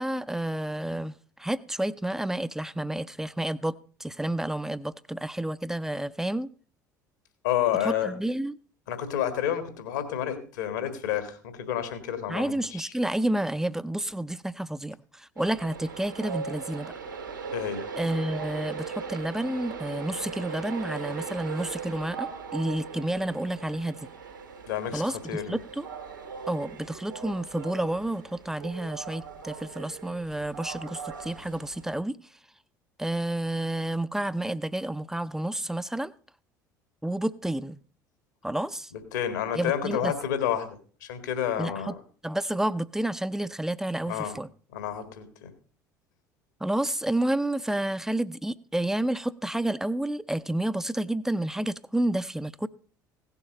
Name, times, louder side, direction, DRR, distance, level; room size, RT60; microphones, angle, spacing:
voice 1, 0.0-6.5 7.8-8.5 12.3-16.9 18.0-24.1 24.9-25.9 26.5-32.2 33.0-36.1 37.0-37.8 38.4-38.9 39.5-40.1 41.6-41.9 42.2-44.5 46.6-52.7, right 1 dB, 5° right, 0.5 m, -30 dB
voice 2, 7.4-8.2 8.9-12.9 17.5-17.8 24.7-25.6 38.9-42.0 44.1-44.4 44.7-45.5, left 10 dB, 65° left, 1.8 m, -30 dB
Train, 15.4-32.0, right 6 dB, 80° right, 1.9 m, -39 dB
16.5 x 7.2 x 5.2 m
figure-of-eight pair, 65°, 10 cm